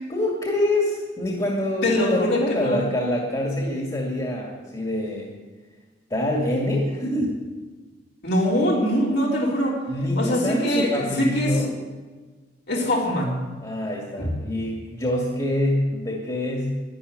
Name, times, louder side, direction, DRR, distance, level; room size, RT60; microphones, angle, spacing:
voice 1, 0.1-5.3 6.1-7.4 9.9-11.8 13.6-16.8, left 1 dB, 25° left, -1 dB, 2.3 m, -25 dB
voice 2, 1.8-2.9 8.2-9.8 10.2-11.7 12.7-13.4 14.2-14.4, equal, 65° left, -3 dB, 3.8 m, -23 dB
12.0 x 11.5 x 9.7 m, 1.3 s
head